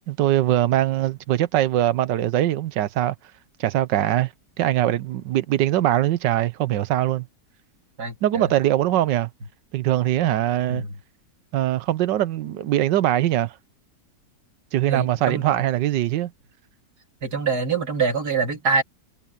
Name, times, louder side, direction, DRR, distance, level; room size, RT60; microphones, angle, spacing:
voice 1, 0.1-3.1 3.6-4.3 4.6-7.3 8.2-9.3 9.7-10.8 11.5-13.5 14.7-16.3, right 13 dB, 90° right, 1.4 m, -22 dB
voice 2, 8.0-8.5 10.7-10.9 14.9-15.6 17.2-18.8, right 5 dB, 65° right, 3.6 m, -25 dB
omnidirectional pair, 1.9 m